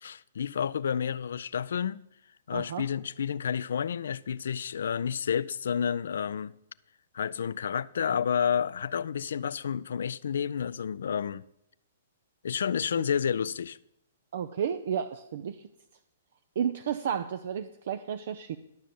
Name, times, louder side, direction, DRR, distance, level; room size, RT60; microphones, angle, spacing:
voice 1, 0.0-2.0 2.5-6.5 7.1-11.4 12.4-13.8, left 7 dB, 70° left, 0.4 m, -30 dB
voice 2, 2.5-2.9 14.3-15.6 16.6-18.6, right 8 dB, 65° right, 0.5 m, -32 dB
12.0 x 6.2 x 6.9 m
hypercardioid pair, 125°, 0 cm